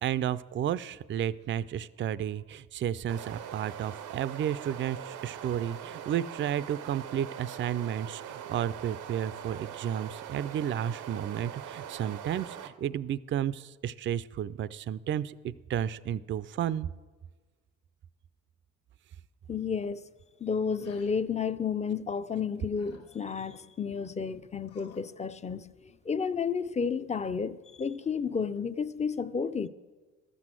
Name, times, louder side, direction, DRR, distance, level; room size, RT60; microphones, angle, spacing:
voice 1, 0.0-16.9, right 10 dB, 40° right, 0.4 m, -32 dB
sound 1, 3.0-12.7, right 9 dB, 90° right, 0.8 m, -42 dB
voice 2, 19.5-20.1 20.4-29.7, left 6 dB, 25° left, 0.4 m, -32 dB
sound 2, 20.8-21.2 22.7-23.6 24.6-25.1, left 5 dB, 50° left, 1.3 m, -55 dB
13.0 x 6.2 x 7.6 m
cardioid pair, 90°, 30 cm